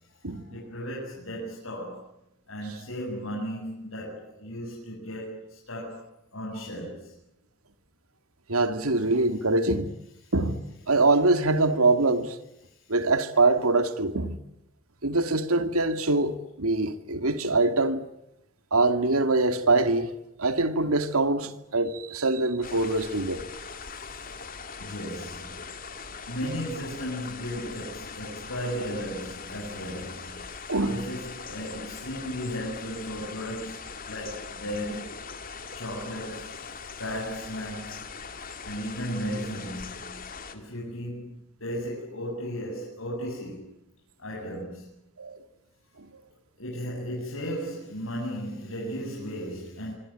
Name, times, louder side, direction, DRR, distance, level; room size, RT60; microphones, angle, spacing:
voice 1, 0.3-2.1 2.5-7.1 10.2-10.3 12.7-12.9 24.8-25.6 26.3-35.2 35.7-38.1 38.4-40.2 40.5-43.7 44.2-44.9 46.6-49.9, equal, 70° left, 7.9 m, -35 dB
voice 2, 8.5-9.9 10.3-12.4 12.9-14.4 15.0-18.0 18.7-20.1 20.4-23.4 30.7-31.1 45.2-45.4 46.0-46.1, right 2 dB, 85° right, 2.5 m, -24 dB
sound 1, 22.6-40.6, left 5 dB, 40° left, 2.8 m, -41 dB
25.5 x 24.5 x 9.0 m
head